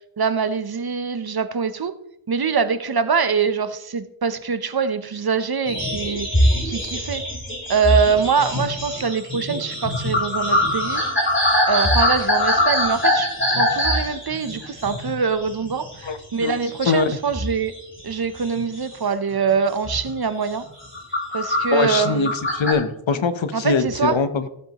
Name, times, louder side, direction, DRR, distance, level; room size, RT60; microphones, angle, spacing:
voice 1, 0.2-1.9 2.3-7.2 7.7-11.0 11.7-17.7 18.0-20.6 21.3-22.3 23.5-24.2, right 5 dB, 45° right, 11 dB, 0.8 m, -24 dB
sound 1, 5.7-16.1 16.4-17.1 17.3-18.9 19.3-19.5 19.8-20.1 20.6-22.7, left 1 dB, 25° left, 4.1 m, -23 dB
voice 2, 16.0-16.5 16.8-17.1 21.7-24.5, left 4 dB, 65° left, 10 dB, 1.0 m, -22 dB
15.0 x 7.5 x 3.0 m, 0.79 s
wide cardioid pair, 80°, 50 cm